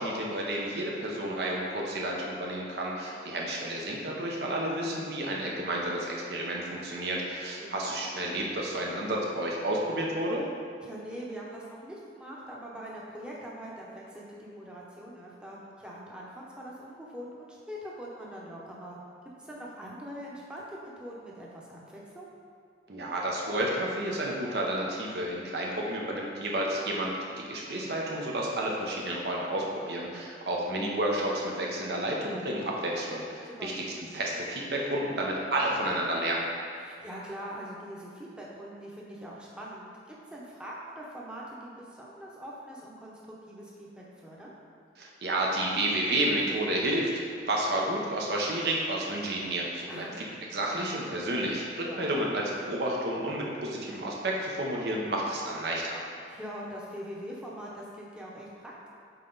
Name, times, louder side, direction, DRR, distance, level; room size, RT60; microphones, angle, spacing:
voice 1, 0.0-10.4 22.9-27.1 27.4-33.7 34.1-36.5 45.0-47.2 47.5-50.0 50.5-51.7 52.0-56.0, right 1 dB, 65° right, -2 dB, 0.8 m, -31 dB
voice 2, 10.8-19.0 19.4-22.3 30.4-30.6 33.4-33.7 36.7-44.5 49.9-50.1 51.8-52.0 56.3-58.9, equal, 5° right, -5 dB, 0.8 m, -43 dB
5.8 x 4.3 x 3.9 m, 2.3 s
head